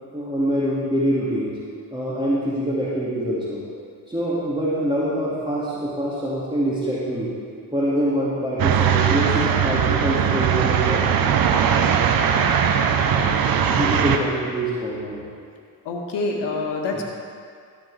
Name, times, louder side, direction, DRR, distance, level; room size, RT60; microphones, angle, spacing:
voice 1, 0.0-1.6 1.9-3.6 4.1-7.3 7.7-11.0 13.0-13.3 13.7-15.2 16.9-17.0, equal, 10° right, -8 dB, 2.2 m, -25 dB
sound 1, 8.6-14.2, right 8 dB, 45° right, 0.9 m, -20 dB
voice 2, 15.8-17.0, left 3 dB, 60° left, 1 dB, 1.6 m, -26 dB
13.5 x 7.6 x 3.4 m, 2.2 s
hypercardioid pair, 50°, 48 cm